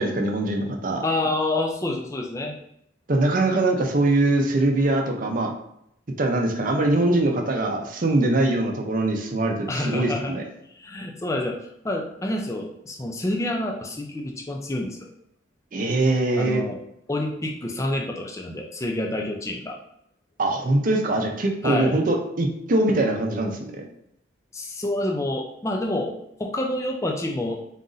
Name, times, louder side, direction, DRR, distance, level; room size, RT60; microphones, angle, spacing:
voice 1, 0.0-1.0 3.1-5.5 6.2-10.4 15.7-16.6 20.4-23.6, right 2 dB, 45° right, 2 dB, 0.6 m, -22 dB
voice 2, 1.0-2.6 9.7-10.4 10.7-11.6 11.8-15.1 16.4-16.8 17.1-19.8 21.6-22.0 24.5-26.1 26.4-27.6, left 1 dB, 15° left, 2 dB, 0.4 m, -28 dB
4.0 x 2.5 x 3.8 m, 0.74 s
head